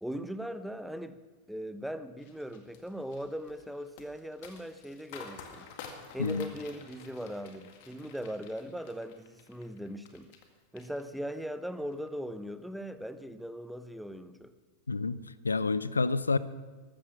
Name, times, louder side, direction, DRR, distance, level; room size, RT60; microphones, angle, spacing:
voice 1, 0.0-1.2 1.5-5.7 6.1-10.3 10.7-14.5, equal, ahead, 12 dB, 0.7 m, -39 dB
sound 1, 2.2-10.5 10.8-11.4 11.8-12.1, left 6 dB, 50° left, 1.9 m, -50 dB
voice 2, 6.2-6.5 14.9-16.4, left 3 dB, 75° left, 17 dB, 0.5 m, -29 dB
14.5 x 13.0 x 6.0 m, 1.3 s
figure-of-eight pair, 90°, 0 cm